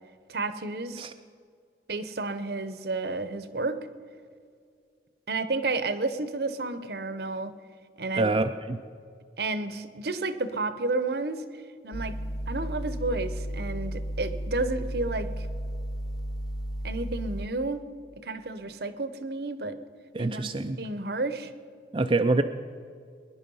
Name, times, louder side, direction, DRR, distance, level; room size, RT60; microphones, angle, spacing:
voice 1, 0.3-1.1 1.9-3.8 5.3-7.5 8.0-8.3 9.4-11.4 11.8-12.2 12.5-15.5 16.8-17.8 18.2-19.8 20.2-20.5 20.8-21.5, right 3 dB, 65° right, 12 dB, 0.9 m, -31 dB
voice 2, 8.1-8.8 20.1-20.8 21.9-22.4, right 2 dB, 30° right, 6 dB, 0.4 m, -25 dB
sound 1, 11.9-17.5, equal, 25° left, 1.2 m, -33 dB
21.0 x 10.5 x 5.5 m, 2.2 s
head